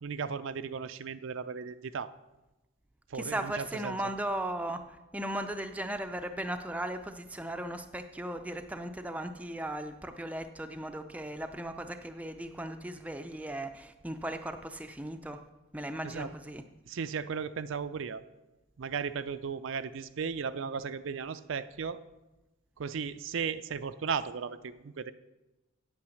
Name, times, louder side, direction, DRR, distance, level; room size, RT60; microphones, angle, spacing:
voice 1, 0.0-2.1 3.1-4.0 16.0-16.3 16.9-18.2 18.8-22.0 22.8-25.1, right 6 dB, 65° right, 12 dB, 0.4 m, -36 dB
voice 2, 3.1-15.4 15.7-16.6, right 1 dB, 5° right, 7 dB, 0.4 m, -37 dB
8.8 x 8.5 x 6.3 m, 1.0 s
head